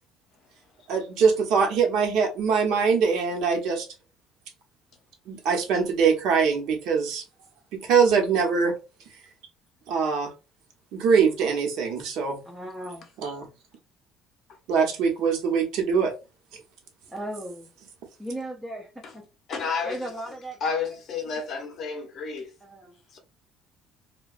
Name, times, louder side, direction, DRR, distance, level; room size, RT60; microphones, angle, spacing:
voice 1, 0.9-3.9 5.3-7.2 7.7-8.7 9.9-10.3 10.9-12.4 13.2-13.5 14.7-16.1, right 6 dB, 70° right, 0.8 m, -23 dB
voice 2, 12.4-13.1 17.1-17.7 18.2-19.2 19.8-20.8 22.6-23.0, right 1 dB, 5° right, 0.4 m, -37 dB
voice 3, 19.5-20.1 20.6-22.5 23.1-23.2, left 5 dB, 40° left, 0.6 m, -31 dB
2.8 x 2.1 x 2.4 m
cardioid pair, 175°, 0 cm